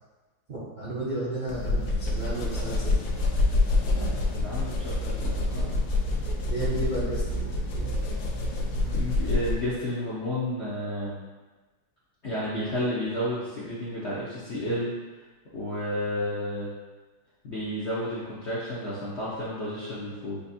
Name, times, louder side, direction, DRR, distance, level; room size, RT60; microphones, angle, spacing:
voice 1, 0.5-3.1 6.5-7.8, right 2 dB, 60° right, -9 dB, 0.5 m, -33 dB
sound 1, 1.5-9.8, left 2 dB, 75° left, 1.3 m, -27 dB
voice 2, 3.9-5.7 8.9-11.2 12.2-14.9 15.5-16.7 17.4-20.4, left 1 dB, 55° left, -9 dB, 0.7 m, -31 dB
6.8 x 2.5 x 2.7 m, 1.2 s
omnidirectional pair, 2.1 m